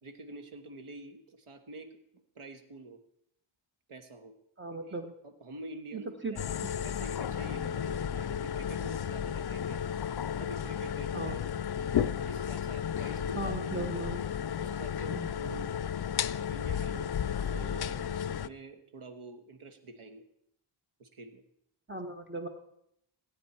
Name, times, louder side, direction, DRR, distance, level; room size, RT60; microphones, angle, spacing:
voice 1, 0.0-1.9 2.3-3.0 3.9-4.3 4.9-5.0 5.2-6.4 6.8-9.9 10.4-11.4 12.2-14.1 14.6-15.8 16.3-20.2 21.0-21.4, right 2 dB, 90° right, 7 dB, 1.5 m, -47 dB
voice 2, 4.6-5.1 5.9-6.4 11.1-11.4 13.3-14.3 15.1-15.3 21.9-22.5, right 2 dB, 25° right, 4 dB, 1.1 m, -37 dB
sound 1, 6.4-18.5, left 8 dB, 55° left, 0.5 m, -33 dB
19.0 x 9.0 x 4.4 m, 0.75 s
wide cardioid pair, 90°, 49 cm